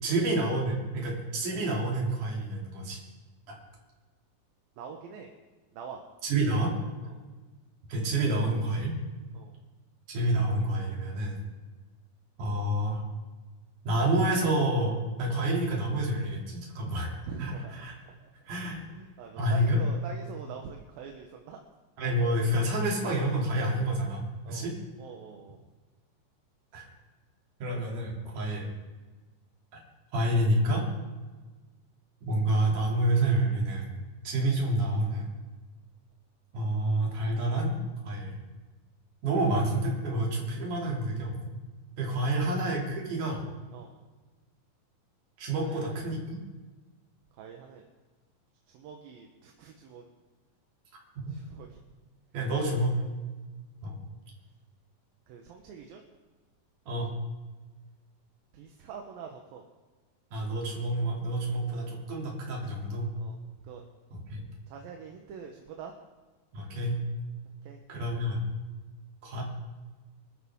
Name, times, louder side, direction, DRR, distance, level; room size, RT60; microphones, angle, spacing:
voice 1, 0.0-3.0 3.5-3.6 6.2-6.7 7.9-8.9 10.1-11.4 12.4-13.0 13.8-17.1 17.4-17.5 17.8-18.0 18.5-18.8 19.4-19.8 22.0-24.2 24.5-24.7 26.7-26.9 27.6-28.7 29.7-29.8 30.1-30.8 32.2-33.9 34.2-35.3 36.5-37.8 38.0-38.3 39.2-41.5 42.0-43.4 45.4-46.4 51.2-51.3 52.3-53.0 53.8-54.0 56.9-57.1 60.3-63.1 64.1-64.4 66.5-67.0 67.9-68.4 69.2-69.4, right 1 dB, 60° right, -2 dB, 4.5 m, -28 dB
voice 2, 4.8-5.3 5.7-6.0 7.0-7.2 9.3-9.6 17.3-18.5 18.9-21.6 24.4-24.7 25.0-25.6 42.3-42.5 43.7-44.0 45.6-46.0 47.4-47.8 48.7-50.0 51.3-51.8 52.7-53.1 55.3-56.0 58.5-59.6 61.7-61.8 63.2-63.4 63.6-63.8 64.7-65.9 67.6-67.8, right 6 dB, 80° right, 2 dB, 2.9 m, -45 dB
25.5 x 12.5 x 3.7 m, 1.3 s
omnidirectional pair, 4.2 m